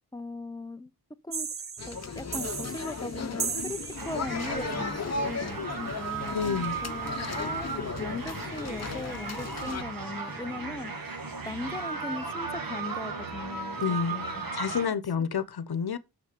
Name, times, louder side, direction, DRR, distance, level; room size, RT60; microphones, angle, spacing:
voice 1, 0.1-0.9 1.2-1.5 1.9-6.4 6.8-11.1 11.5-14.4 15.2-15.3, left 2 dB, 10° left, 0.6 m, -39 dB
sound 1, 1.3-4.6, right 5 dB, 35° right, 0.6 m, -36 dB
sound 2, 1.8-9.8, left 4 dB, 40° left, 0.9 m, -36 dB
sound 3, 4.0-14.9, right 4 dB, 60° right, 2.0 m, -36 dB
voice 2, 6.3-6.8 8.1-8.2 13.8-16.0, left 6 dB, 75° left, 1.0 m, -30 dB
6.6 x 6.4 x 6.8 m
wide cardioid pair, 120°, 38 cm